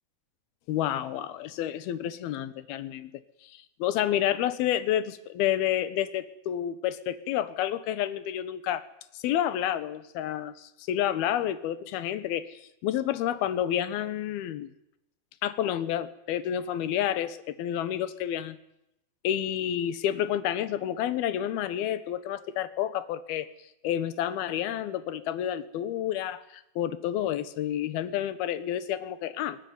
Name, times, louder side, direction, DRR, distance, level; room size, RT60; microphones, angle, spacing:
voice 1, 0.7-3.1 3.4-8.8 9.2-14.7 15.4-18.6 19.2-23.5 23.8-29.6, left 11 dB, 90° left, 12 dB, 3.2 m, -29 dB
22.0 x 19.0 x 9.6 m, 0.80 s
omnidirectional pair, 4.3 m